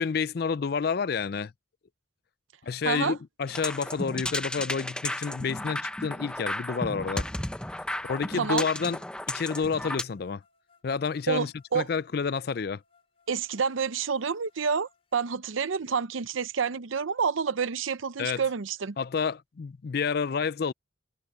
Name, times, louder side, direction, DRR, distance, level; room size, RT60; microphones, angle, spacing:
voice 1, 0.0-1.5 2.6-7.3 8.1-9.0 9.3-10.4 10.8-12.8 18.2-18.4 19.0-20.7, left 5 dB, 50° left, 0.4 m, -29 dB
voice 2, 2.8-3.2 8.4-8.7 11.3-11.9 13.3-19.0, right 6 dB, 85° right, 0.7 m, -28 dB
sound 1, 3.5-10.0, left 1 dB, 5° left, 0.7 m, -34 dB
sound 2, 7.9-8.0 9.3-15.3, left 5 dB, 30° left, 4.7 m, -67 dB
head